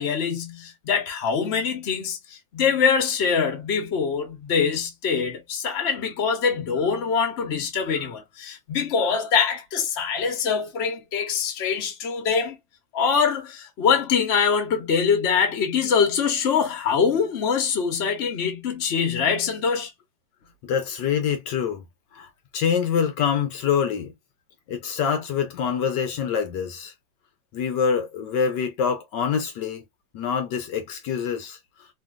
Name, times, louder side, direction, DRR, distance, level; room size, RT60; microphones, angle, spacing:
voice 1, 0.0-12.6 12.9-19.9, left 6 dB, 45° left, 1.0 m, -24 dB
voice 2, 20.6-21.8 22.1-24.1 24.7-26.9 27.5-29.9 30.1-31.6, left 7 dB, 75° left, 1.3 m, -25 dB
2.8 x 2.8 x 2.2 m
omnidirectional pair, 2.0 m